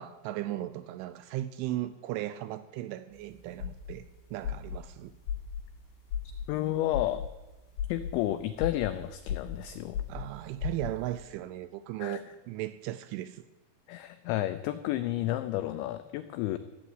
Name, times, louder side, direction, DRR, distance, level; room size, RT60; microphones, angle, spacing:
voice 1, 0.0-4.0 4.3-5.1 10.1-13.4, right 14 dB, 85° right, 13 dB, 2.8 m, -36 dB
sound 1, 3.1-11.2, left 8 dB, 65° left, 5.2 m, -36 dB
voice 2, 6.5-7.2 7.9-10.0 12.0-12.2 13.9-16.6, left 14 dB, 90° left, 10 dB, 2.6 m, -31 dB
15.0 x 7.4 x 9.7 m, 1.1 s
omnidirectional pair, 5.9 m